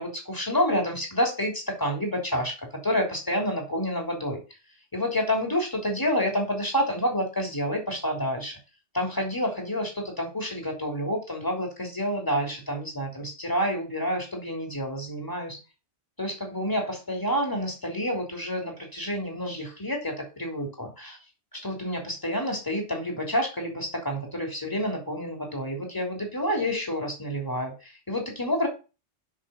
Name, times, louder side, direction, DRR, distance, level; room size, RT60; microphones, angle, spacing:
voice 1, 0.0-2.5 2.8-4.4 4.9-8.5 8.9-15.6 16.2-21.2 21.6-28.7, equal, 15° left, 1 dB, 3.4 m, -28 dB
7.5 x 6.6 x 7.1 m, 0.31 s
omnidirectional pair, 1.2 m